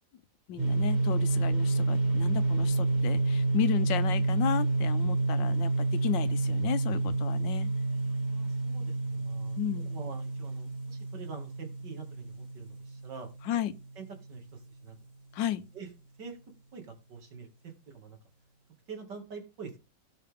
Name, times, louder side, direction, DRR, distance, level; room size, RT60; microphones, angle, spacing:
voice 1, 0.5-7.7 9.6-9.9 13.5-13.7 15.3-15.6, left 10 dB, 80° left, 1.5 m, -33 dB
sound 1, 0.6-14.1, right 2 dB, 25° right, 2.0 m, -29 dB
voice 2, 8.3-9.6 9.8-13.3 14.0-15.0 15.7-15.9 16.2-16.4 16.7-18.2 18.9-19.8, right 5 dB, 70° right, 2.8 m, -45 dB
17.0 x 5.7 x 3.5 m
omnidirectional pair, 1.9 m